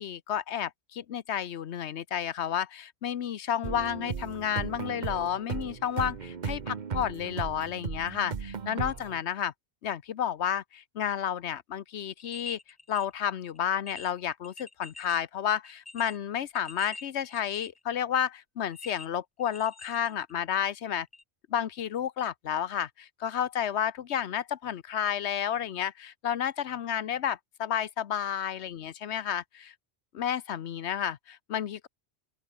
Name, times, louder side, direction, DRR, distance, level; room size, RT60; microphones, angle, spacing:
voice 1, 0.0-9.5 9.8-12.6 12.9-21.1 21.5-29.7 30.1-31.9, left 9 dB, 80° left, 1.1 m, -31 dB
sound 1, 3.6-9.2, right 6 dB, 45° right, 1.0 m, -36 dB
sound 2, 12.0-13.1 13.5-13.6 13.9-15.2 15.6-17.9 18.7-20.5 21.1-21.2, left 2 dB, 15° left, 0.7 m, -46 dB
open air
omnidirectional pair, 1.1 m